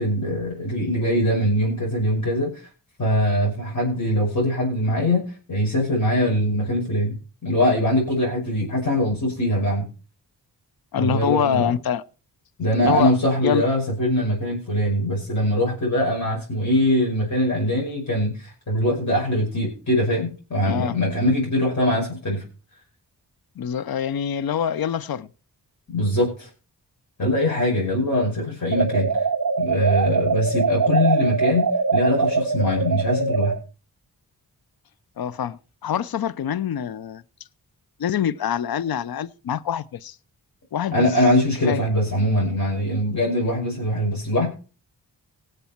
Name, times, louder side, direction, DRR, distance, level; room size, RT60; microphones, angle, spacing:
voice 1, 0.0-2.7 3.0-5.2 5.5-7.2 7.4-9.9 11.0-11.7 12.6-22.4 25.9-26.5 27.2-29.2 29.6-33.5 40.9-44.5, left 1 dB, 45° left, 5.9 m, -22 dB
voice 2, 10.9-12.0 12.8-13.1 13.4-13.6 20.6-20.9 23.6-25.3 35.2-37.2 38.0-40.2 40.7-41.1 41.6-41.8, left 9 dB, 60° left, 0.7 m, -25 dB
sound 1, 28.7-33.6, right 4 dB, 45° right, 0.9 m, -22 dB
18.0 x 6.9 x 4.4 m
cardioid pair, 50°, 42 cm